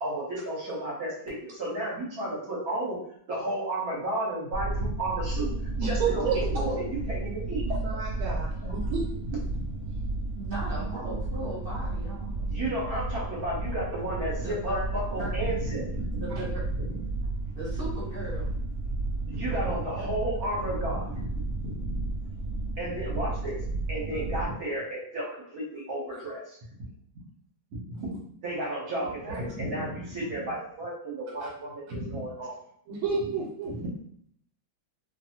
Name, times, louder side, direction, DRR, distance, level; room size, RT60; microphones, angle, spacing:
voice 1, 0.0-3.0 3.3-5.5 5.8-7.6 8.2-8.7 9.5-9.6 10.9-11.0 12.5-16.2 16.9-17.0 19.2-21.3 21.6-22.0 22.8-23.6 23.9-26.4 27.7-32.5 33.7-33.9, right 1 dB, 55° right, -5 dB, 1.2 m, -33 dB
sound 1, 4.5-24.4, right 2 dB, 80° left, 0.5 m, -32 dB
voice 2, 5.8-6.4 7.6-8.5 8.7-9.1 20.0-20.1 28.6-28.7 29.2-29.4 31.4-31.5 32.9-33.7, right 5 dB, 85° right, -3 dB, 1.4 m, -31 dB
voice 3, 10.4-12.5 14.4-14.8 15.2-15.3 16.2-16.6 17.5-18.5, right 2 dB, 30° right, -8 dB, 1.3 m, -37 dB
2.9 x 2.6 x 2.8 m, 0.66 s
omnidirectional pair, 2.2 m